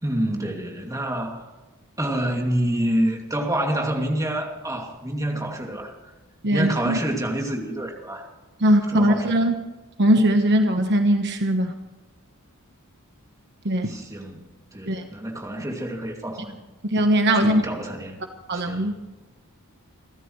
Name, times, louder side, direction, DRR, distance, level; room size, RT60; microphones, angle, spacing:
voice 1, 0.0-1.5 2.0-5.9 6.5-8.3 8.9-9.5 13.9-14.5 14.7-16.6 17.3-18.2 18.5-18.9, right 1 dB, 15° right, 1 dB, 2.5 m, -27 dB
voice 2, 6.4-7.0 8.6-9.6 10.0-11.7 13.6-13.9 14.9-15.0 16.9-17.6 18.5-19.0, right 1 dB, 50° right, 5 dB, 1.2 m, -20 dB
29.5 x 13.0 x 3.2 m, 1.1 s
head